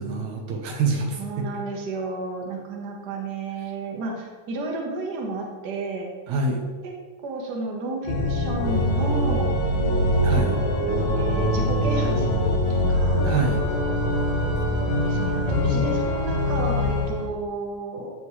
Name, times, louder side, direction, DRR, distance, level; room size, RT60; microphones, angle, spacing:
voice 1, 0.0-1.5 6.3-6.6 10.2-10.6 13.2-13.6, right 3 dB, 75° right, 2 dB, 2.4 m, -26 dB
voice 2, 1.2-6.1 6.8-6.9 7.2-9.6 11.1-13.3 15.0-18.1, right 3 dB, 45° right, 0 dB, 1.4 m, -32 dB
Organ, 8.0-17.3, left 1 dB, 80° left, 2.7 m, -23 dB
14.5 x 5.3 x 3.2 m, 1.4 s
omnidirectional pair, 3.4 m